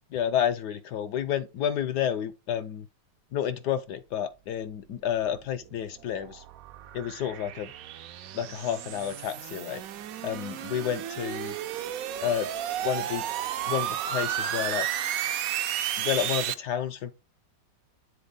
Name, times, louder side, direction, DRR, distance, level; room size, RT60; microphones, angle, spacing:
voice 1, 0.1-2.9 3.3-6.4 6.9-7.7 8.3-9.8 10.2-11.6 12.2-12.5 12.8-13.2 13.7-14.9 16.0-17.1, left 9 dB, 70° left, 1.2 m, -30 dB
sound 1, 5.2-16.5, right 11 dB, 70° right, 0.8 m, -33 dB
8.3 x 3.8 x 3.8 m
omnidirectional pair, 2.0 m